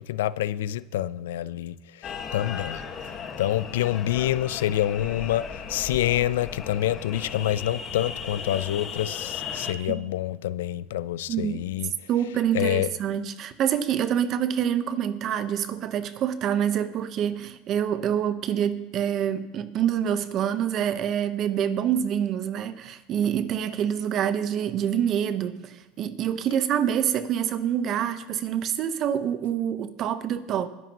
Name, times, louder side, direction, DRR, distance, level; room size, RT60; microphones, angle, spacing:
voice 1, 0.0-2.8 3.4-11.9 12.5-12.9, left 13 dB, 90° left, 0.4 m, -27 dB
sound 1, 2.0-9.7, left 6 dB, 35° left, 1.5 m, -36 dB
voice 2, 11.3-11.6 12.1-30.7, right 9 dB, 40° right, 0.9 m, -26 dB
21.0 x 11.0 x 3.0 m
supercardioid pair, 130°, 0 cm